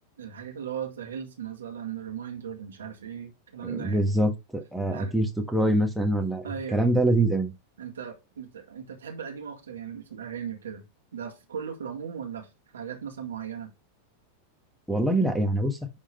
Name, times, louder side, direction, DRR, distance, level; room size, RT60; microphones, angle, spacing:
voice 1, 0.2-4.0 4.9-5.1 6.4-6.8 7.8-10.9 11.1-13.7, right 8 dB, 65° right, 1.9 m, -37 dB
voice 2, 3.6-7.5 14.9-15.8, right 1 dB, ahead, 1.3 m, -25 dB
10.0 x 3.7 x 3.3 m
figure-of-eight pair, 90°, 0 cm